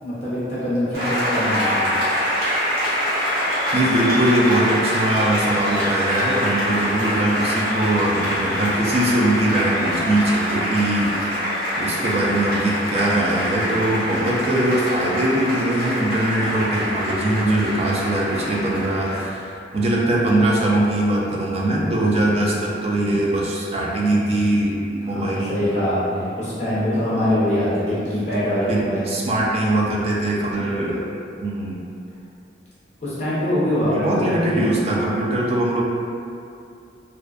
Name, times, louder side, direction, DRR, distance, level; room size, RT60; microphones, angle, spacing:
voice 1, 0.0-2.0 25.0-29.1 30.6-31.1 33.0-35.2, left 1 dB, 35° left, -10 dB, 0.6 m, -24 dB
Applause, 0.9-19.2, equal, 55° right, 0.9 m, -25 dB
voice 2, 3.7-11.1 11.8-25.5 27.9-28.0 28.7-31.0 31.4-31.8 33.8-35.8, right 1 dB, 35° right, -4 dB, 0.3 m, -21 dB
2.5 x 2.1 x 2.3 m, 2.5 s
head